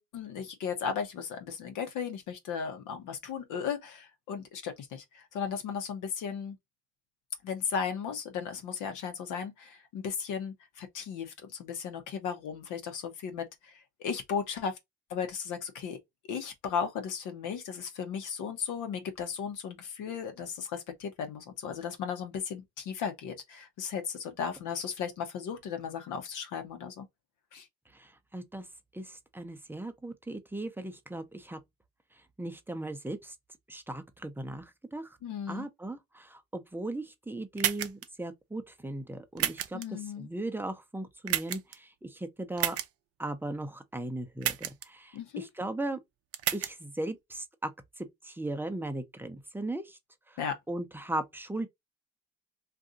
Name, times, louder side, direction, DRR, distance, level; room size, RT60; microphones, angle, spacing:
voice 1, 0.0-6.6 7.4-14.8 15.1-16.0 16.3-27.1 27.5-27.7 35.2-35.7 39.7-40.3 45.1-45.5 50.4-50.6, left 7 dB, 65° left, 0.9 m, -36 dB
voice 2, 27.9-28.7 28.9-31.6 32.4-33.3 33.7-35.2 35.5-42.8 43.2-46.0 46.5-47.7 48.0-50.0 50.3-50.4 50.7-51.7, right 1 dB, 5° right, 0.7 m, -37 dB
sound 1, 37.6-38.1 39.4-39.8 41.3-41.7 42.6-42.9 44.4-44.9 46.3-46.7, right 11 dB, 45° right, 0.6 m, -30 dB
2.6 x 2.5 x 3.6 m
hypercardioid pair, 65°, 33 cm